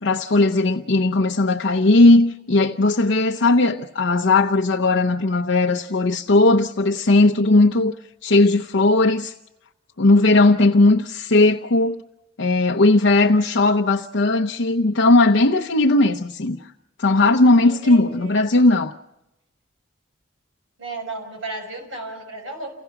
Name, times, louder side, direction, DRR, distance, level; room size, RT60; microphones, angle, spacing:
voice 1, 0.0-8.0 8.2-9.3 10.0-12.0 12.4-16.7 17.0-18.9, left 2 dB, 65° left, 0.8 m, -17 dB
voice 2, 17.6-18.4 20.8-22.8, right 2 dB, 75° right, 6.3 m, -34 dB
29.5 x 17.0 x 5.9 m
head